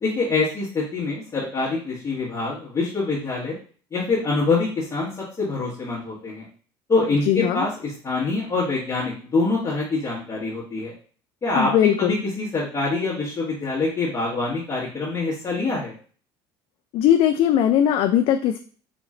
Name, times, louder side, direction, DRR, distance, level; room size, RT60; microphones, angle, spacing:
voice 1, 0.0-3.5 3.9-6.5 6.9-10.9 11.4-15.9, left 3 dB, 25° left, -8 dB, 1.5 m, -25 dB
voice 2, 7.3-7.7 11.5-12.2 16.9-18.6, left 10 dB, 55° left, 7 dB, 0.4 m, -19 dB
4.3 x 3.0 x 3.7 m, 0.42 s
supercardioid pair, 110°, 12 cm